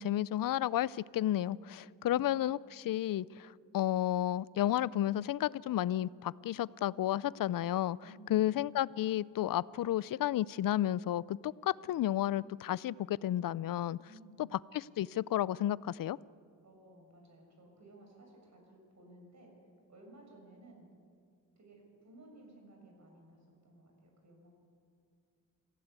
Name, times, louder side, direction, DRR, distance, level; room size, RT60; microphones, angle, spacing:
voice 1, 0.0-8.0 8.3-14.0 14.7-16.2, left 12 dB, 70° left, 21 dB, 0.5 m, -32 dB
voice 2, 1.6-2.4 8.0-8.5 14.1-14.4 16.6-19.5 19.9-20.9 21.6-24.5, right 1 dB, 55° right, 1 dB, 6.6 m, -57 dB
27.0 x 16.0 x 8.3 m, 2.3 s
wide cardioid pair, 115°, 34 cm